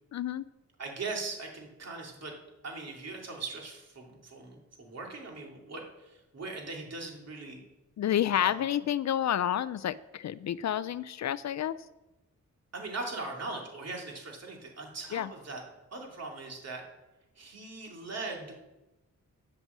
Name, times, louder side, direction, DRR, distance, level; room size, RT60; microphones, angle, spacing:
voice 1, 0.1-0.4 8.0-11.8 15.1-15.3, left 10 dB, 65° left, 16 dB, 0.4 m, -29 dB
voice 2, 0.8-2.3 2.6-7.6 8.3-8.6 12.7-15.6 15.9-16.8 17.4-18.6, right 3 dB, 55° right, 0 dB, 3.0 m, -40 dB
9.5 x 8.1 x 7.3 m, 1.0 s
cardioid pair, 95°, 30 cm